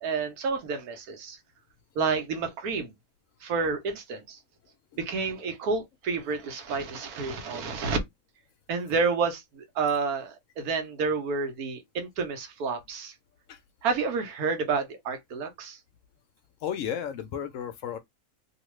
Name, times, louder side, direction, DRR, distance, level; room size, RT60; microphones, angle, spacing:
voice 1, 0.0-1.4 2.0-2.9 3.4-4.4 5.0-8.0 8.7-13.1 13.8-15.8, right 4 dB, 85° right, 1.3 m, -29 dB
voice 2, 16.6-18.0, left 9 dB, 70° left, 0.8 m, -33 dB
2.8 x 2.3 x 3.1 m
omnidirectional pair, 1.5 m